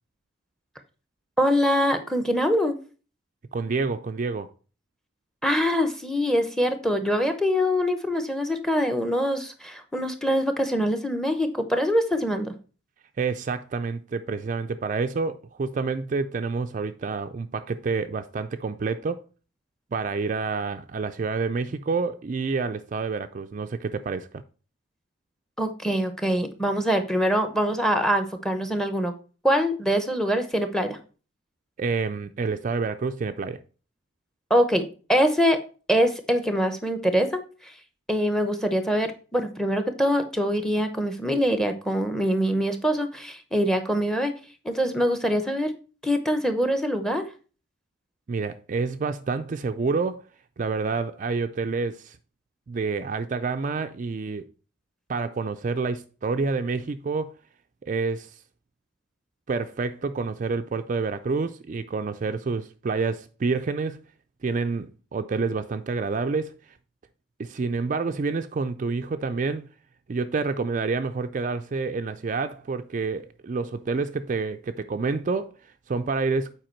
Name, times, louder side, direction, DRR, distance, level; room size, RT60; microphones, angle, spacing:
voice 1, 1.4-2.7 5.4-12.5 25.6-29.1 29.4-31.0 34.5-34.8 35.1-35.6 35.9-37.7 38.1-44.3 44.6-45.7 46.0-47.2, equal, ahead, 0.7 m, -24 dB
voice 2, 3.5-4.5 13.2-19.2 19.9-24.3 31.8-33.6 48.3-50.2 50.6-52.2 52.7-54.4 55.1-57.3 57.8-58.3 59.5-64.0 64.4-66.5 67.4-69.7 70.1-75.5 75.9-76.5, right 4 dB, 40° right, 0.3 m, -28 dB
7.7 x 4.7 x 4.4 m
head